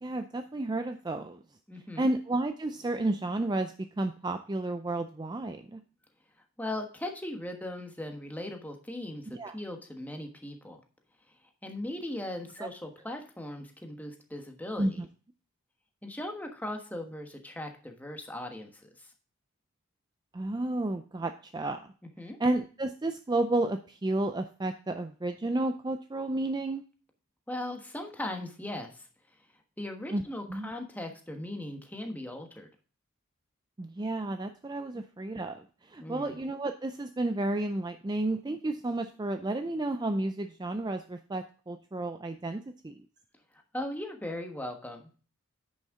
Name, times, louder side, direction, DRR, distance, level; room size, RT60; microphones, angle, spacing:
voice 1, 0.0-1.4 2.0-5.8 9.3-9.6 12.6-12.7 14.8-15.1 20.3-21.9 22.4-26.8 30.1-30.2 30.5-30.7 33.8-43.0, right 2 dB, 20° right, 8 dB, 0.4 m, -32 dB
voice 2, 1.7-2.1 6.6-9.2 9.5-10.8 11.6-15.0 16.0-19.1 22.2-22.4 27.5-29.1 29.8-32.7 34.9-35.0 36.0-36.4 43.5-45.0, left 1 dB, 5° left, 4 dB, 1.2 m, -38 dB
9.9 x 6.4 x 3.6 m, 0.39 s
head